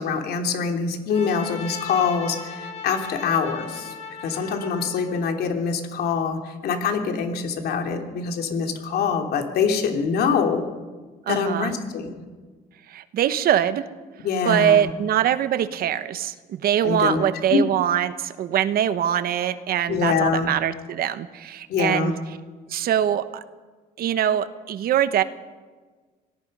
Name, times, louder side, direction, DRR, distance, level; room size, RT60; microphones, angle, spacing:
voice 1, 0.0-3.9 4.2-10.7 11.3-12.1 14.2-14.9 16.8-17.2 17.5-17.6 19.9-20.5 21.7-22.2, left 5 dB, 70° left, 4 dB, 3.1 m, -24 dB
Trumpet, 1.1-5.5, left 4 dB, 40° left, 4.3 m, -38 dB
voice 2, 11.3-11.7 12.9-13.8 14.4-22.1 22.7-23.4 24.0-25.2, right 10 dB, 60° right, 12 dB, 1.2 m, -23 dB
25.0 x 18.5 x 5.5 m, 1.4 s
cardioid pair, 110°, 17 cm